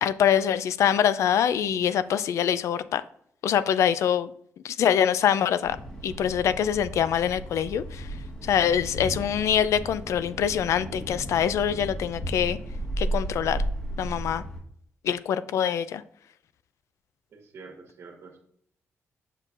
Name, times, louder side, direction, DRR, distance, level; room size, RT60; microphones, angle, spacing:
voice 1, 0.0-3.0 3.4-4.3 4.6-5.8 6.0-8.1 8.4-12.6 13.0-13.6 14.0-14.4 15.0-16.0, left 9 dB, 80° left, 0.4 m, -24 dB
Thunder, 5.6-14.6, right 1 dB, 20° left, 1.6 m, -34 dB
voice 2, 17.3-18.4, right 4 dB, 60° right, 1.5 m, -46 dB
7.6 x 6.4 x 2.5 m
cardioid pair, 130°, 5 cm